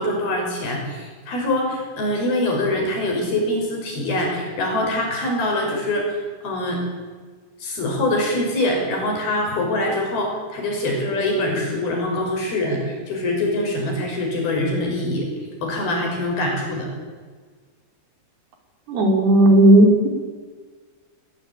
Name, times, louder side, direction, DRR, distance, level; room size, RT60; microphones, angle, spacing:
voice 1, 0.0-6.2 6.4-6.8 7.6-15.3 15.6-16.9, left 1 dB, 75° left, 1 dB, 8.0 m, -24 dB
voice 2, 18.9-20.1, right 1 dB, 85° right, 3 dB, 6.0 m, -13 dB
20.5 x 20.0 x 9.0 m, 1.5 s
omnidirectional pair, 4.4 m